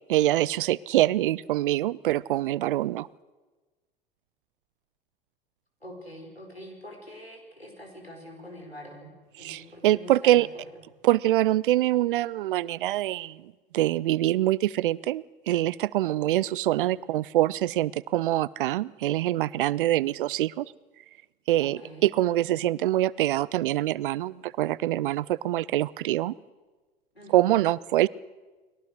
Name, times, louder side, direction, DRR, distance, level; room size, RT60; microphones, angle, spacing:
voice 1, 0.1-3.1 9.4-10.5 11.0-20.7 21.5-26.3 27.3-28.1, right 14 dB, 60° right, 22 dB, 0.7 m, -25 dB
voice 2, 5.8-10.6 21.6-22.0 27.1-27.7, equal, 90° left, 2 dB, 5.4 m, -45 dB
30.0 x 21.5 x 6.5 m, 1.3 s
figure-of-eight pair, 80°, 30 cm